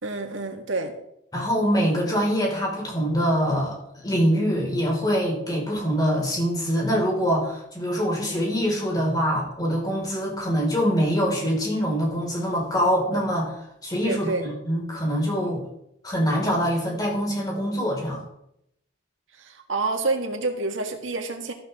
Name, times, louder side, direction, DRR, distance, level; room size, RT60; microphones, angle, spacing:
voice 1, 0.0-0.9 14.0-14.5 19.4-21.5, right 3 dB, 85° right, 4 dB, 1.8 m, -28 dB
voice 2, 1.3-14.3 14.6-15.6 16.0-18.2, equal, 20° left, -2 dB, 5.1 m, -24 dB
13.5 x 12.5 x 3.7 m, 0.77 s
head